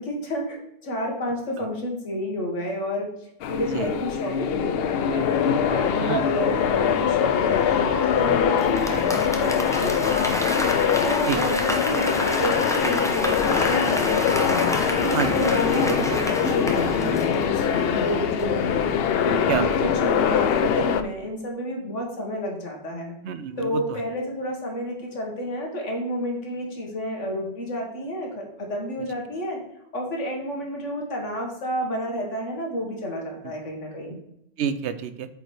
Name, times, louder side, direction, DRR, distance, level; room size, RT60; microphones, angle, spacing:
voice 1, 0.0-3.1 3.5-5.3 5.7-10.6 11.0-14.5 14.9-18.9 19.2-23.2 23.6-29.6 29.9-34.2, equal, 80° left, 0 dB, 1.9 m, -30 dB
sound 1, 3.4-21.0, left 8 dB, 65° left, 0.7 m, -23 dB
Applause / Crowd, 8.6-18.0 18.4-18.5, equal, 5° left, 0.6 m, -29 dB
Mallet percussion, 17.6-22.2, right 3 dB, 30° left, 2.0 m, -43 dB
voice 2, 19.5-19.8 23.2-24.0 33.4-33.5 34.6-35.3, right 7 dB, 70° right, 12 dB, 0.8 m, -28 dB
8.5 x 4.8 x 3.2 m, 0.81 s
omnidirectional pair, 1.2 m